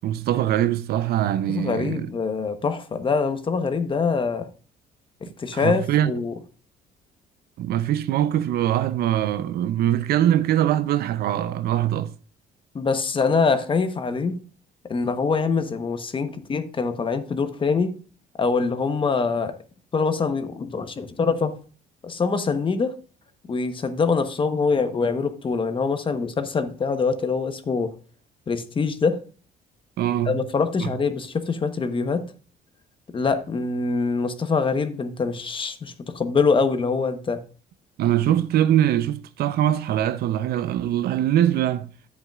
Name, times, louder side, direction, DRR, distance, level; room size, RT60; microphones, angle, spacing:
voice 1, 0.0-2.1 5.5-6.1 7.6-12.1 30.0-30.4 30.8-30.9 38.0-41.9, right 11 dB, 65° right, 0.6 m, -22 dB
voice 2, 1.5-4.5 5.2-6.3 12.7-14.4 14.9-17.9 18.4-19.5 19.9-21.6 22.0-22.9 23.5-27.9 28.5-29.2 30.3-32.3 33.1-37.4, left 4 dB, 30° left, 1.1 m, -24 dB
10.5 x 8.0 x 2.4 m
cardioid pair, 110°, 17 cm